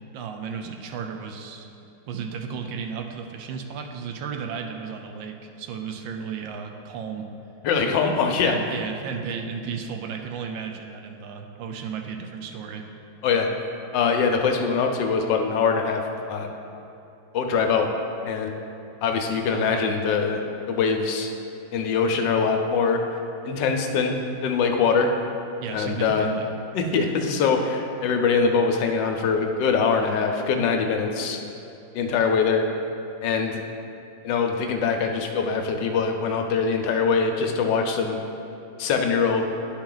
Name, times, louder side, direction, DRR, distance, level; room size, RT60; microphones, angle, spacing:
voice 1, 0.1-1.7 2.1-7.3 8.4-12.9 19.5-19.9 25.6-26.5, right 6 dB, 80° right, 5 dB, 1.3 m, -34 dB
voice 2, 7.6-8.6 13.2-13.5 13.9-16.0 16.3-16.5 17.3-17.9 18.2-18.5 19.0-20.4 20.7-21.3 21.7-23.0 23.4-25.1 25.7-26.3 26.7-31.5 31.9-32.6 33.2-33.6 34.2-38.2 38.8-39.4, left 5 dB, 75° left, 4 dB, 1.3 m, -23 dB
11.0 x 4.3 x 3.8 m, 2.8 s
omnidirectional pair, 2.0 m